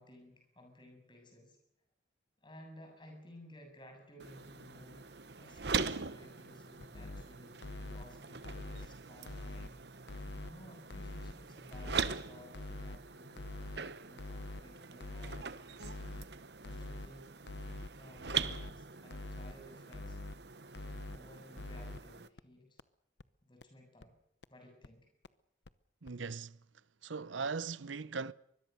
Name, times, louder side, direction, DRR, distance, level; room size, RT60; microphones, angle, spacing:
voice 1, 0.0-1.6 2.4-5.1 5.4-16.0 16.6-17.3 18.0-20.2 21.1-22.8 23.4-24.1 24.5-25.1, left 1 dB, 25° left, 7.5 m, -57 dB
sound 1, 4.2-22.3, right 6 dB, 60° right, 1.1 m, -42 dB
sound 2, 6.8-7.2 7.6-8.0 8.4-8.9 9.3-9.7 10.1-10.5 10.9-11.3 11.7-12.1 12.5-13.0 13.4-13.8 14.2-14.6 15.0-15.4 15.8-16.2 16.6-17.1 17.5-17.9 18.3-18.7 19.1-19.5 19.9-20.4 20.7-21.2 21.6-22.0 22.4-22.5 22.8-22.9 23.2-23.3 23.6-23.7 24.0-24.1 24.4-24.5 24.8-24.9 25.2-25.3 25.7-25.8 26.1-26.2, left 2 dB, 65° left, 0.8 m, -44 dB
voice 2, 26.0-26.6 27.0-28.3, right 4 dB, 85° right, 0.8 m, -39 dB
24.5 x 21.5 x 6.7 m
head